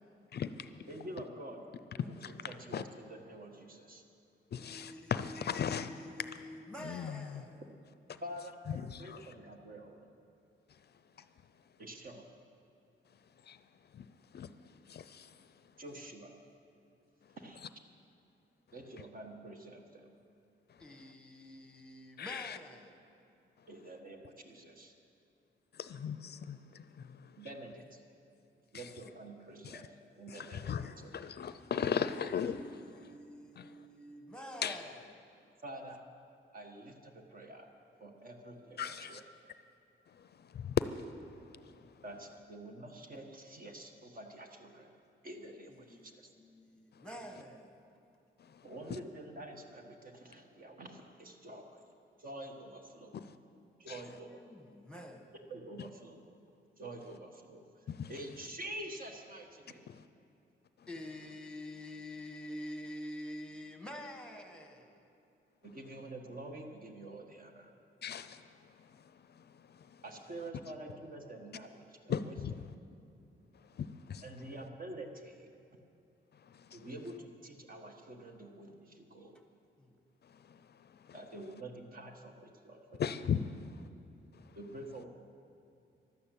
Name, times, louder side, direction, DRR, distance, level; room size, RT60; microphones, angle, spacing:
voice 1, 0.3-0.7 2.2-2.3 2.7-2.8 4.5-6.1 6.8-7.4 8.7-9.3 13.5-13.6 13.9-14.1 14.3-14.5 14.9-15.4 22.2-22.6 25.7-27.3 28.7-28.9 29.6-29.8 30.3-32.8 33.6-33.7 34.6-34.8 38.8-39.2 40.2-40.8 41.1-41.2 41.8-41.9 48.4-48.6 53.1-53.4 53.9-54.0 57.9-58.1 59.9-60.0 68.0-68.5 68.8-69.0 69.3-70.0 72.1-72.5 73.7-74.2 76.5-76.9 80.4-80.6 83.0-83.7, left 8 dB, 55° left, 0.5 m, -38 dB
voice 2, 0.9-1.6 2.2-4.0 8.2-10.0 11.8-12.3 15.8-16.3 17.4-17.6 18.7-20.1 23.7-24.9 27.4-28.0 28.7-29.8 30.2-31.1 35.6-36.0 36.5-39.2 42.0-44.9 45.2-46.3 48.6-51.8 52.2-53.2 53.8-54.3 55.5-56.2 56.8-59.9 65.6-67.7 70.0-72.3 74.2-75.5 76.7-79.4 81.1-83.0 84.5-85.1, right 1 dB, 45° right, 1.5 m, -47 dB
voice 3, 4.6-7.6 20.8-23.0 31.8-35.0 45.7-47.7 54.0-55.3 60.9-65.0 79.8-80.0, left 1 dB, 5° left, 1.3 m, -48 dB
12.5 x 12.0 x 8.3 m
wide cardioid pair, 145°, 20 cm